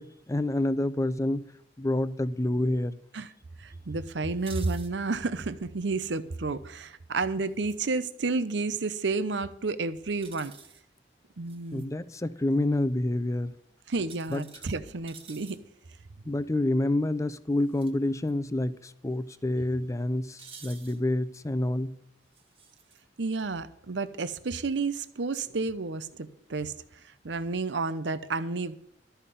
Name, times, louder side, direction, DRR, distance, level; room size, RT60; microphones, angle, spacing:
voice 1, 0.0-1.5 1.8-2.9 11.7-13.5 14.3-14.4 16.3-22.0, left 1 dB, 15° left, 0.5 m, -28 dB
voice 2, 3.6-10.5 11.4-11.8 13.9-15.6 23.2-26.7 27.2-28.7, right 3 dB, 80° right, 0.7 m, -31 dB
sound 1, 4.4-4.9 7.5-7.8 10.2-10.8 11.5-11.8 14.1-15.6 17.6-17.9 18.3-18.4 20.4-21.0 22.3-23.0, right 6 dB, 30° right, 1.4 m, -49 dB
13.0 x 5.7 x 8.2 m
head